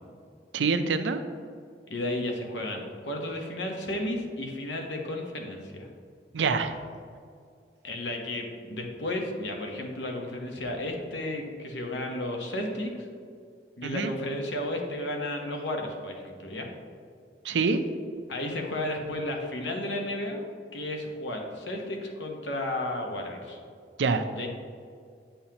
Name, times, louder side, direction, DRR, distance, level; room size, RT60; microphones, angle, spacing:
voice 1, 0.5-1.2 6.3-6.7 13.8-14.1 17.4-17.8 24.0-24.2, right 4 dB, 85° right, 9 dB, 0.5 m, -25 dB
voice 2, 1.9-5.9 7.8-13.1 13.8-16.7 18.3-20.5 20.7-23.6 24.3-24.5, left 1 dB, 85° left, 2 dB, 1.0 m, -33 dB
8.6 x 5.6 x 2.9 m, 2.2 s
head